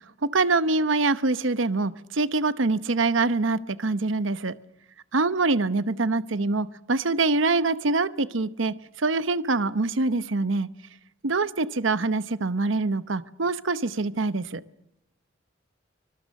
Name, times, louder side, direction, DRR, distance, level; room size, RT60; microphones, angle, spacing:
voice 1, 0.2-4.5 5.1-10.7 11.2-14.6, right 3 dB, 75° right, 14 dB, 0.9 m, -24 dB
25.5 x 22.5 x 6.5 m, 0.86 s
head